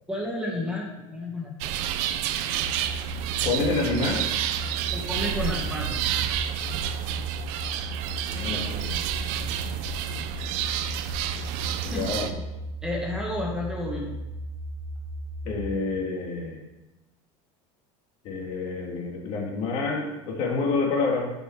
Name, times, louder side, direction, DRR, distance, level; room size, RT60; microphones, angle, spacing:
voice 1, 0.1-1.8 4.9-6.0 11.8-12.2 12.8-14.2, left 1 dB, 5° right, -2 dB, 1.4 m, -31 dB
sound 1, 1.6-12.3, right 11 dB, 55° right, 0.6 m, -30 dB
sound 2, 2.6-15.6, right 1 dB, 30° right, 1.4 m, -36 dB
voice 2, 3.4-4.3 8.3-9.0 11.8-12.3 15.4-16.6 18.2-21.3, left 3 dB, 45° left, 0 dB, 1.8 m, -28 dB
10.0 x 5.3 x 4.6 m, 1.0 s
cardioid pair, 165°, 14 cm